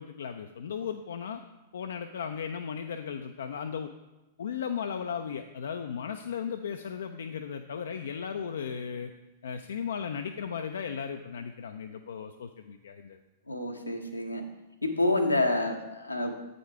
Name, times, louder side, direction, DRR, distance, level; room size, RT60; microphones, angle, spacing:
voice 1, 0.0-1.4 1.7-3.9 4.4-9.1 9.4-13.2, left 7 dB, 65° left, 6 dB, 0.4 m, -36 dB
voice 2, 13.5-14.4 14.8-16.4, left 2 dB, 85° left, 4 dB, 0.8 m, -28 dB
7.9 x 4.9 x 4.7 m, 1.0 s
figure-of-eight pair, 100°, 0 cm